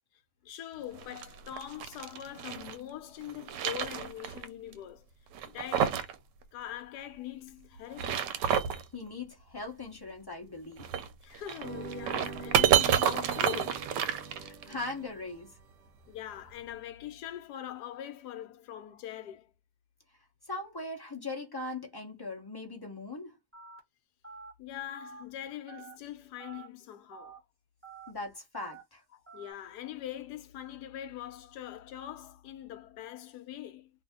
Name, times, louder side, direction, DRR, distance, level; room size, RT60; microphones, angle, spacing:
voice 1, 0.4-5.1 5.4-6.1 6.5-8.2 11.2-13.9 16.1-19.5 24.6-27.4 29.1-33.9, left 11 dB, 75° left, 1.2 m, -43 dB
sound 1, 0.9-2.8 3.2-4.5 4.7-4.8 5.3-6.2 6.4-6.5 7.8-8.8 10.8-14.8, right 9 dB, 85° right, 1.2 m, -29 dB
voice 2, 8.9-10.9 14.4-15.5 20.5-23.3 28.1-29.0, left 2 dB, 25° left, 0.5 m, -40 dB
sound 2, 11.6-15.9, right 4 dB, 60° right, 0.8 m, -44 dB
Telephone, 23.5-23.8 24.2-24.5 25.0-25.2 25.7-25.9 26.4-26.7 27.1-27.4 27.8-28.1 28.5-28.8 29.3-29.5, right 6 dB, 10° right, 1.3 m, -48 dB
2.7 x 2.7 x 3.5 m
omnidirectional pair, 1.8 m